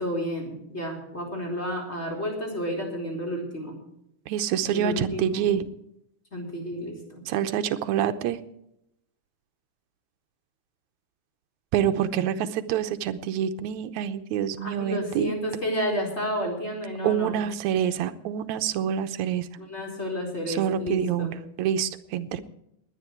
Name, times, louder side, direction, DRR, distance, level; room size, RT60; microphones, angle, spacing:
voice 1, 0.0-3.8 4.7-5.6 6.3-7.2 14.6-17.3 19.6-21.3, equal, 20° left, 0 dB, 4.3 m, -31 dB
voice 2, 4.3-5.6 7.3-8.4 11.7-15.3 17.0-19.5 20.5-22.4, right 9 dB, 70° right, 9 dB, 2.0 m, -26 dB
20.5 x 10.0 x 4.6 m, 0.81 s
omnidirectional pair, 3.7 m